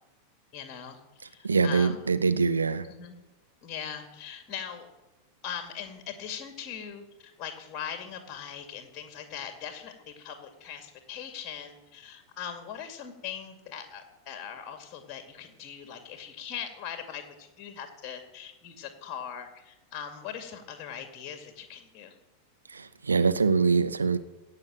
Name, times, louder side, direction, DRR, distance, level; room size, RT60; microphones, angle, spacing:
voice 1, 0.5-2.0 2.8-3.2 3.6-4.9 5.4-22.1, left 8 dB, 35° left, 7 dB, 2.2 m, -40 dB
voice 2, 1.4-2.9 22.7-24.2, right 4 dB, 75° right, 10 dB, 0.8 m, -24 dB
16.5 x 5.8 x 8.8 m, 1.1 s
figure-of-eight pair, 90°, 0 cm